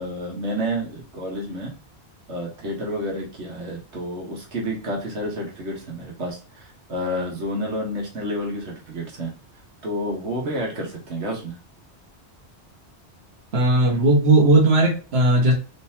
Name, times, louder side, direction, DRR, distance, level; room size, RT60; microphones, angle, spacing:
voice 1, 0.0-1.7 2.3-9.3 9.8-11.6, equal, 85° right, -1 dB, 1.7 m, -30 dB
voice 2, 13.5-15.5, right 2 dB, 65° right, -1 dB, 1.5 m, -17 dB
4.0 x 3.8 x 2.8 m, 0.35 s
omnidirectional pair, 1.1 m